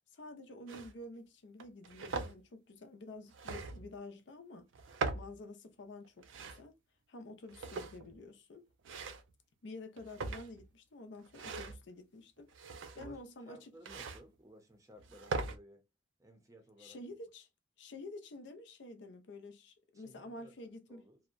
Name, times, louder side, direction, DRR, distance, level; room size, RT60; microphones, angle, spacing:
voice 1, 0.1-4.7 5.1-6.7 7.1-8.7 9.6-13.7 16.8-17.5 17.8-21.1, left 2 dB, 65° left, 0.5 m, -50 dB
sound 1, 0.7-0.9 1.6-2.3 3.3-3.9 4.7-5.4 6.0-6.6 7.5-8.2 8.8-9.3 10.0-10.7 11.3-11.8 12.5-13.2 13.8-14.2 15.0-15.6, right 4 dB, 85° right, 0.4 m, -40 dB
voice 2, 12.9-15.8 16.2-17.0 19.9-20.5 20.9-21.2, equal, 15° right, 0.6 m, -57 dB
2.6 x 2.1 x 2.4 m
head